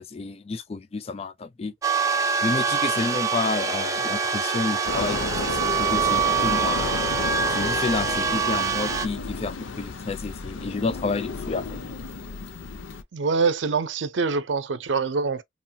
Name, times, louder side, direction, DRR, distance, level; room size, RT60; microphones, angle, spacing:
voice 1, 0.0-1.7 2.4-6.8 7.5-11.8, left 4 dB, 30° left, 0.4 m, -30 dB
sound 1, 1.8-9.1, right 5 dB, 15° right, 0.5 m, -25 dB
sound 2, 4.8-13.0, left 4 dB, 80° left, 0.6 m, -32 dB
voice 2, 13.1-15.4, right 4 dB, 70° right, 0.5 m, -24 dB
3.0 x 2.2 x 2.7 m
head